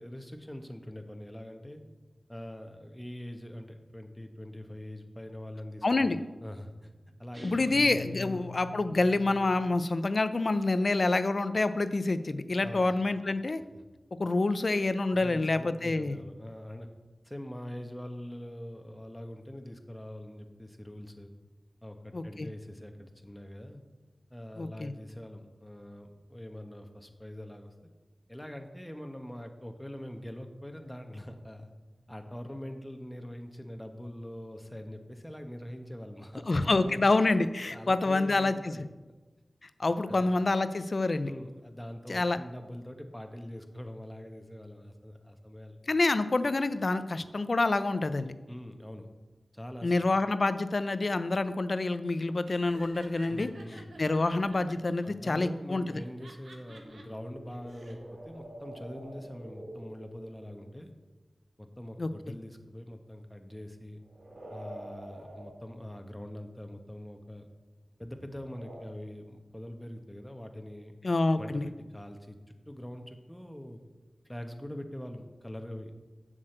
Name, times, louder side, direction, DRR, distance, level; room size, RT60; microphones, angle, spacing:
voice 1, 0.0-1.8 2.3-6.9 7.2-7.7 8.1-8.4 12.6-12.9 13.7-13.8 15.1-16.9 17.2-21.3 21.8-23.8 24.3-27.9 28.3-31.7 32.1-37.0 37.7-38.8 40.1-40.3 41.2-45.8 48.5-49.1 49.5-50.1 53.3-53.9 55.0-60.9 61.6-64.0 64.5-67.5 68.0-71.0 71.4-73.8 74.2-75.9, left 1 dB, 10° left, 5 dB, 1.2 m, -43 dB
voice 2, 5.8-6.2 7.4-13.6 14.2-16.2 22.1-22.5 24.6-24.9 36.5-38.7 39.6-41.3 42.1-42.4 45.9-48.3 49.8-53.5 54.0-56.0 62.0-62.1 71.0-71.7, left 2 dB, 55° left, 12 dB, 0.6 m, -27 dB
sound 1, 7.3-9.9, left 4 dB, 40° right, 3.0 m, -44 dB
Laughter, 52.4-55.1 55.9-57.0 57.5-57.9, right 2 dB, 85° right, 1.5 m, -52 dB
sound 2, 52.6-54.8 56.5-60.7 64.0-65.6 68.3-68.8, right 1 dB, 65° right, 2.4 m, -48 dB
7.4 x 6.4 x 7.9 m, 1.2 s
wide cardioid pair, 55°, 0 cm